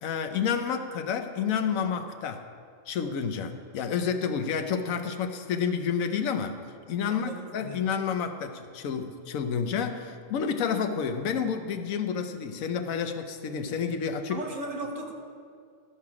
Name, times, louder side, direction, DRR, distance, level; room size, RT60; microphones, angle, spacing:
voice 1, 0.0-2.5 2.9-6.6 6.9-14.4, left 6 dB, 90° left, 7 dB, 1.1 m, -29 dB
voice 2, 7.0-7.9 14.3-15.1, right 2 dB, 75° right, 2 dB, 1.5 m, -37 dB
13.5 x 5.7 x 4.8 m, 2.2 s
omnidirectional pair, 1.4 m